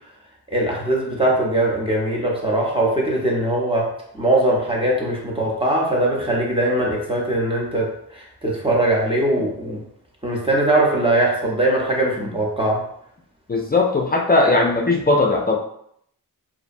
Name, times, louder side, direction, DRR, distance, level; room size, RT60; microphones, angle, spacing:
voice 1, 0.5-9.8 10.2-12.8, right 1 dB, 15° right, -3 dB, 0.7 m, -21 dB
voice 2, 13.5-15.6, left 2 dB, 25° left, -1 dB, 0.4 m, -18 dB
2.5 x 2.1 x 2.6 m, 0.70 s
cardioid pair, 65°, 38 cm